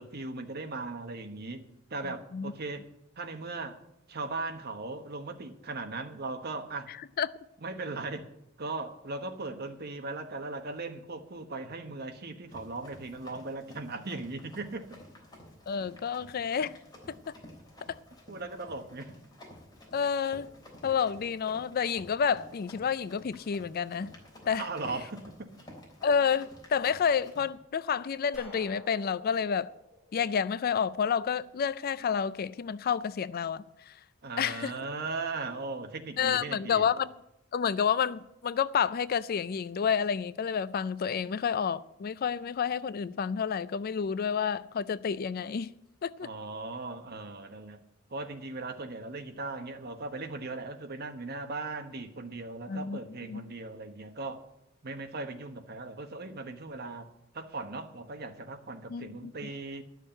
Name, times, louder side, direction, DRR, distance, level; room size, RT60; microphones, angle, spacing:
voice 1, 0.0-1.6 1.9-2.8 3.2-3.8 4.1-6.9 7.6-8.3 8.6-15.0 18.3-19.1 24.5-25.5 34.2-36.9 46.2-47.8 48.1-54.4 54.8-57.1 57.3-59.8, right 3 dB, 55° right, 1.2 m, -38 dB
Run, 12.5-27.5, left 1 dB, 20° left, 3.5 m, -52 dB
voice 2, 15.7-16.8 17.3-17.4 17.9-18.0 19.9-20.5 20.8-24.1 24.5-24.7 26.0-29.7 30.1-33.6 34.4-34.7 36.2-37.1 37.5-45.7 46.0-46.3 52.7-53.0 53.3-53.4 58.9-59.5, left 7 dB, 50° left, 0.4 m, -29 dB
sound 1, 28.3-31.1, left 1 dB, 5° right, 3.8 m, -51 dB
12.0 x 6.4 x 8.8 m
head